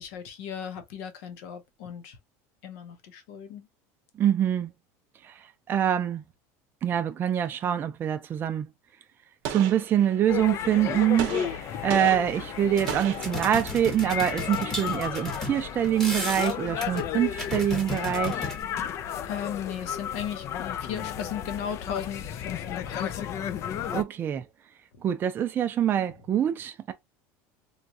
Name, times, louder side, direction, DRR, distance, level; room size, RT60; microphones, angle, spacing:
voice 1, 0.0-2.2 2.6-3.7 19.3-23.3, left 8 dB, 70° left, 0.8 m, -36 dB
voice 2, 4.2-4.7 5.2-5.3 5.7-6.2 6.8-8.7 9.5-18.5 23.9-24.4 25.0-26.9, right 10 dB, 25° right, 0.4 m, -25 dB
Gunshot gunfire, 9.4-10.5 11.2-14.0, right 9 dB, 60° right, 0.7 m, -37 dB
sound 1, 10.3-24.0, left 9 dB, 40° left, 0.3 m, -33 dB
sound 2, 12.3-12.4 12.6-18.6, left 1 dB, 5° left, 1.0 m, -35 dB
3.1 x 2.3 x 2.6 m
supercardioid pair, 140°, 8 cm